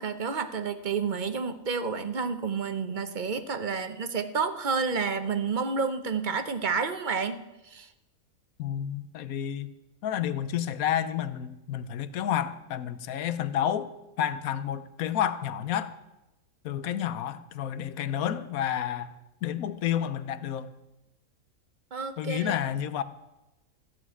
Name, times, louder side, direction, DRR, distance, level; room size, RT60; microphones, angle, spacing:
voice 1, 0.0-7.9 21.9-22.6, right 5 dB, 40° right, 0.8 m, -30 dB
voice 2, 8.6-9.7 10.0-16.0 16.6-19.1 19.4-20.7 22.2-23.0, left 10 dB, 85° left, 1.2 m, -30 dB
14.5 x 6.1 x 9.2 m
omnidirectional pair, 1.5 m